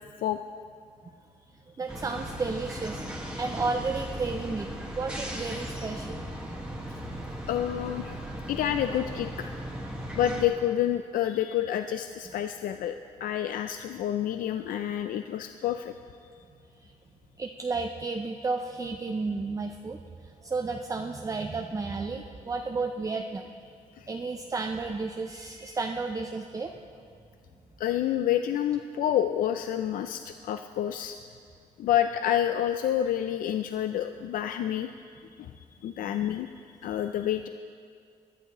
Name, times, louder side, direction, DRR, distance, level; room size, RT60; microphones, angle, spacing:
voice 1, 1.8-3.0 3.4-4.7 4.9-6.5 16.8-16.9 17.4-23.5 24.1-26.8 36.0-36.1, right 3 dB, 25° right, 3 dB, 0.5 m, -32 dB
sound 1, 1.9-10.5, equal, 5° right, 1.6 m, -37 dB
voice 2, 7.5-8.2 8.5-9.3 10.2-15.9 24.0-24.1 27.8-31.2 31.8-34.9 35.4-36.5 36.8-37.5, left 11 dB, 85° left, 8 dB, 0.4 m, -28 dB
19.0 x 11.5 x 3.0 m, 2.2 s
cardioid pair, 110°, 14 cm